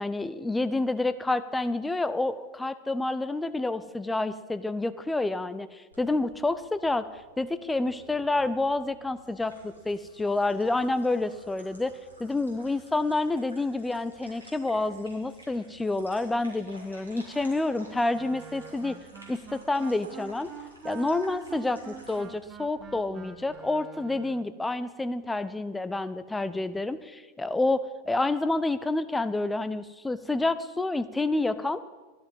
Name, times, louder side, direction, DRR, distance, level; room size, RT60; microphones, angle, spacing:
voice 1, 0.0-7.1 7.4-11.9 12.2-19.0 19.3-20.5 20.8-31.8, left 2 dB, 10° left, 13 dB, 0.6 m, -28 dB
sound 1, 5.9-23.6, equal, 90° left, 3.2 m, -53 dB
Wind instrument woodwind instrument, 18.1-24.5, right 8 dB, 25° right, 0.9 m, -45 dB
12.0 x 11.5 x 5.4 m, 1.3 s
figure-of-eight pair, 90°, 0 cm